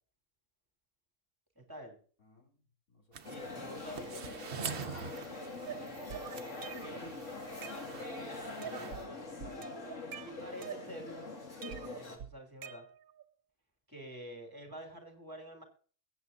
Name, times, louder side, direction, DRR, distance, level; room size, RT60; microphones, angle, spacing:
voice 1, 1.5-2.0 3.3-5.3 8.6-9.7 10.2-11.1 11.7-12.8 13.9-15.6, equal, 15° right, 3 dB, 3.3 m, -49 dB
voice 2, 2.2-3.3 6.2-9.1, equal, 90° left, -1 dB, 4.1 m, -60 dB
sound 1, 3.1-9.0, right 6 dB, 55° right, 1.2 m, -46 dB
sound 2, 3.2-12.2, left 3 dB, 60° left, 2.5 m, -44 dB
sound 3, 5.7-7.1 7.4-8.2 8.6-9.1 9.4-11.2 11.6-13.2, right 9 dB, 85° right, 1.3 m, -46 dB
21.5 x 8.8 x 2.7 m, 0.41 s
omnidirectional pair, 1.5 m